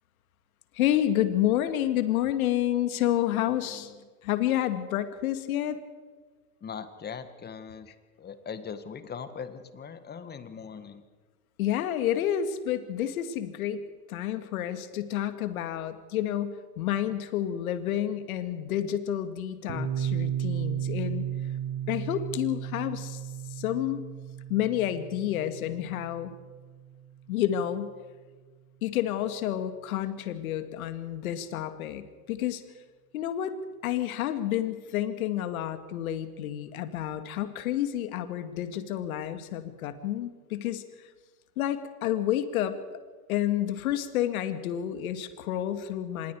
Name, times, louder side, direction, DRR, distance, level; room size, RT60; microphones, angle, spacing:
voice 1, 0.7-3.9 4.2-5.8 11.6-21.2 21.9-23.2 23.5-24.0 24.5-26.3 27.3-27.9 28.8-32.6 33.1-33.6 33.8-41.1 41.6-43.0 43.3-46.3, left 11 dB, 70° left, 9 dB, 2.3 m, -29 dB
voice 2, 3.3-4.1 6.6-11.0, left 6 dB, 20° left, 11 dB, 1.9 m, -41 dB
Piano, 19.7-27.1, right 9 dB, 70° right, 4.0 m, -34 dB
26.0 x 21.5 x 4.9 m, 1.4 s
hypercardioid pair, 110°, 45 cm